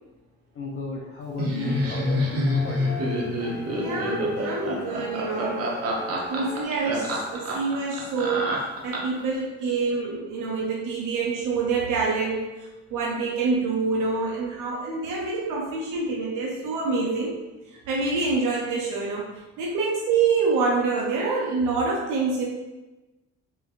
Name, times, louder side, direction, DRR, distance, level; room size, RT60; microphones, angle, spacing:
voice 1, 0.6-3.0, left 3 dB, 45° left, -2 dB, 0.5 m, -34 dB
Laughter, 1.4-9.2, equal, 50° right, 0.8 m, -27 dB
sound 1, 1.6-6.6, left 3 dB, 80° left, 1.1 m, -38 dB
voice 2, 3.7-5.7 6.3-17.4 17.7-19.3 19.6-22.4, right 4 dB, 85° right, -3 dB, 0.6 m, -26 dB
3.4 x 3.2 x 2.4 m, 1.1 s
cardioid pair, 90°, 30 cm